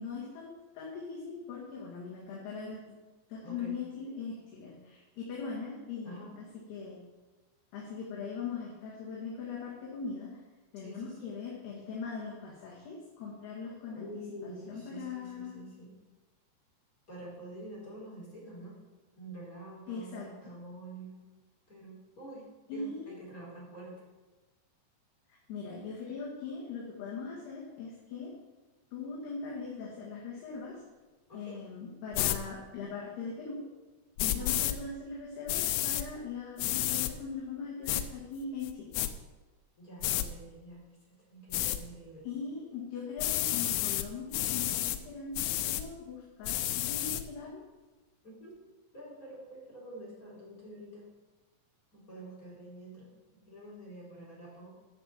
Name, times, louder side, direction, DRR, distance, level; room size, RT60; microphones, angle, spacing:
voice 1, 0.0-2.9 3.3-6.4 6.7-7.0 7.7-10.3 10.7-14.1 14.4-15.6 19.9-20.3 22.7-23.1 25.5-28.3 28.9-30.8 31.3-33.6 34.2-38.9 42.2-47.6, left 5 dB, 60° left, -5 dB, 3.7 m, -40 dB
voice 2, 3.4-3.8 6.0-6.3 10.8-11.3 13.9-16.0 17.1-18.8 19.2-21.2 21.7-23.9 31.3-31.6 34.2-34.5 39.8-40.8 41.1-42.3 48.2-48.6 48.9-51.1 51.9-54.7, right 1 dB, 20° left, -5 dB, 3.7 m, -47 dB
sound 1, 32.1-32.4 34.2-34.7 35.5-36.0 36.6-37.1 37.9-38.0 38.6-39.1 40.0-40.3 41.5-41.8 43.2-44.1 44.3-45.0 45.3-45.8 46.4-47.2, left 14 dB, 85° left, 3.2 m, -30 dB
11.5 x 6.7 x 7.3 m, 1.2 s
omnidirectional pair, 5.6 m